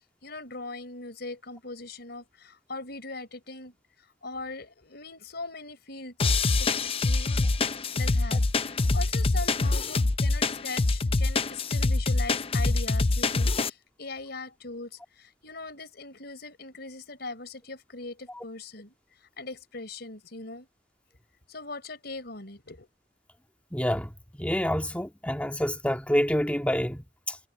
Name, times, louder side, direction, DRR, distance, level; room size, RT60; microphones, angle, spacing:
voice 1, 0.2-3.7 4.2-6.3 6.6-6.7 7.0-7.5 7.9-19.0 19.4-20.7 21.5-22.9, left 3 dB, 60° left, 5.0 m, -40 dB
sound 1, 6.2-13.7, left 3 dB, 30° left, 0.6 m, -25 dB
voice 2, 23.7-24.1 24.4-27.4, equal, 10° left, 1.9 m, -27 dB
head